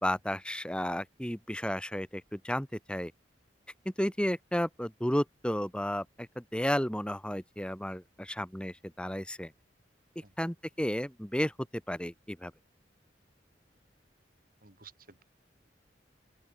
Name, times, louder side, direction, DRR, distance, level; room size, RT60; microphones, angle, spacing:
voice 1, 0.0-3.1 3.8-9.5 10.4-11.5 11.9-12.5, equal, 5° left, 2.8 m, -33 dB
voice 2, 14.6-15.2, right 5 dB, 50° right, 4.4 m, -54 dB
open air
head